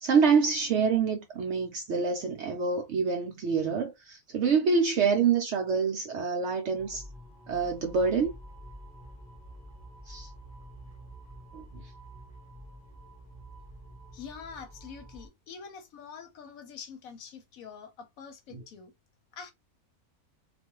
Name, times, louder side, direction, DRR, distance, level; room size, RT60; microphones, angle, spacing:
voice 1, 0.0-7.0 7.5-8.3 10.1-10.3 11.5-11.8 18.5-18.6, right 5 dB, 70° right, 0.7 m, -26 dB
sound 1, 6.8-15.3, right 1 dB, 10° right, 0.7 m, -48 dB
voice 2, 14.1-18.9 19.3-19.5, left 6 dB, 70° left, 1.0 m, -45 dB
2.4 x 2.4 x 2.8 m
omnidirectional pair, 1.6 m